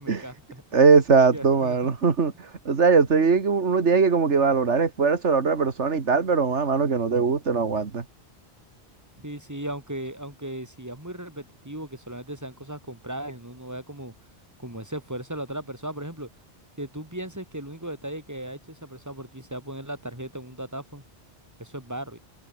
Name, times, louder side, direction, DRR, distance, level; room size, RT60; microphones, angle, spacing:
voice 1, 0.0-0.8 1.3-1.8 9.2-14.1 14.6-16.3 16.8-21.0 21.6-22.2, right 1 dB, 15° right, 4.2 m, -37 dB
voice 2, 0.7-8.0, right 5 dB, 90° right, 2.2 m, -21 dB
omnidirectional pair, 1.2 m